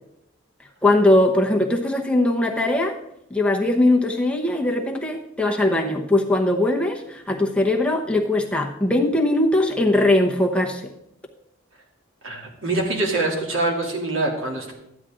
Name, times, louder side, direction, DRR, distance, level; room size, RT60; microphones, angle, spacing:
voice 1, 0.8-3.0 3.3-10.9, left 1 dB, 5° left, 0 dB, 0.8 m, -20 dB
voice 2, 12.2-14.7, right 2 dB, 85° right, 0 dB, 2.8 m, -24 dB
13.0 x 9.8 x 3.7 m, 0.82 s
head